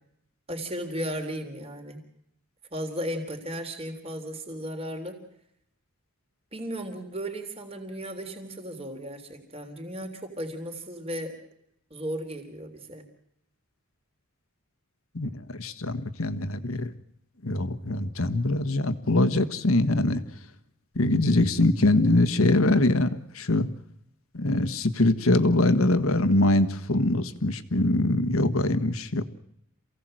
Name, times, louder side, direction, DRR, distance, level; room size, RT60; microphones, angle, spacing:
voice 1, 0.5-2.0 2.7-5.2 6.5-11.4 11.9-13.1, equal, 25° right, 4 dB, 3.5 m, -35 dB
voice 2, 15.1-16.9 17.4-20.2 20.9-23.7 24.3-29.2, left 2 dB, 75° left, 10 dB, 1.5 m, -23 dB
27.5 x 17.0 x 7.8 m, 0.78 s
head